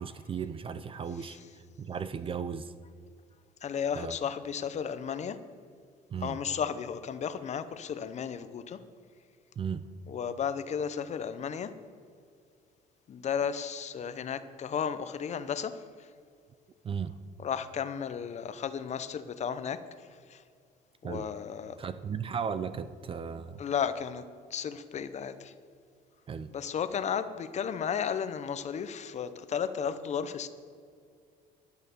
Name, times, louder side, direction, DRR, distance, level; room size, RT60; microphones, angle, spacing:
voice 1, 0.0-1.4 1.8-2.7 3.9-4.2 6.1-6.4 9.6-9.9 16.8-17.1 21.0-21.3 21.8-23.6 26.3-26.5, right 6 dB, 30° right, 13 dB, 0.4 m, -35 dB
voice 2, 3.6-5.4 6.2-8.8 10.1-11.7 13.1-15.8 17.4-19.8 20.3-20.4 21.0-21.8 23.6-24.2 24.5-25.5 26.5-30.5, left 7 dB, 40° left, 12 dB, 0.6 m, -34 dB
11.5 x 6.5 x 6.8 m, 2.3 s
cardioid pair, 110°, 17 cm